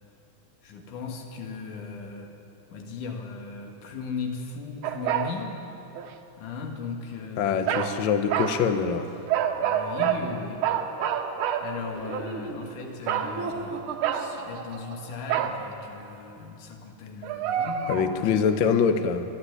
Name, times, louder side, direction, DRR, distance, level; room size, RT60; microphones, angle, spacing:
voice 1, 0.6-2.3 2.7-5.6 6.4-7.5 9.6-10.7 11.6-13.9 14.1-18.3, left 5 dB, 90° left, 3 dB, 3.4 m, -37 dB
sound 1, 4.8-5.4 5.9-6.1 7.7-7.9 8.3-8.6 9.3-10.2 10.6-12.3 13.1-13.3 14.0-14.4 15.3-15.6 17.2-18.1, right 9 dB, 80° right, 2.6 m, -27 dB
voice 2, 7.4-9.1 17.9-19.2, left 6 dB, 65° left, 9 dB, 1.2 m, -24 dB
Laughter, 11.9-15.6, right 4 dB, 55° right, 1.7 m, -38 dB
22.5 x 12.0 x 9.8 m, 2.9 s
omnidirectional pair, 3.5 m